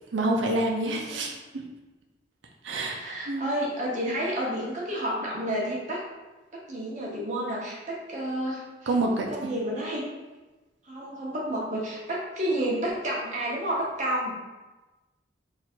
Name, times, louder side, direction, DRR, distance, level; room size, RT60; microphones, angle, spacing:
voice 1, 0.1-1.6 2.6-3.5 8.9-9.3, right 2 dB, 90° right, 1 dB, 0.6 m, -27 dB
voice 2, 2.7-6.0 6.7-8.9 9.3-10.0 10.9-14.3, right 1 dB, 40° right, -4 dB, 0.9 m, -30 dB
2.9 x 2.5 x 4.3 m, 1.2 s
head